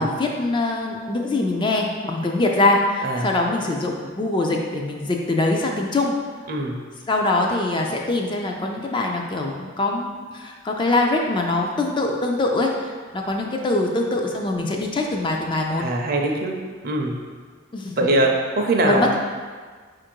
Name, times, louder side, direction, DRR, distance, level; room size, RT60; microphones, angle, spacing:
voice 1, 0.0-6.1 7.1-15.8 17.7-18.1 18.8-19.2, left 2 dB, 25° left, 1 dB, 0.3 m, -23 dB
voice 2, 15.8-16.6 16.8-17.2 18.0-19.2, right 2 dB, 50° right, 1 dB, 0.5 m, -22 dB
4.5 x 2.5 x 4.4 m, 1.5 s
head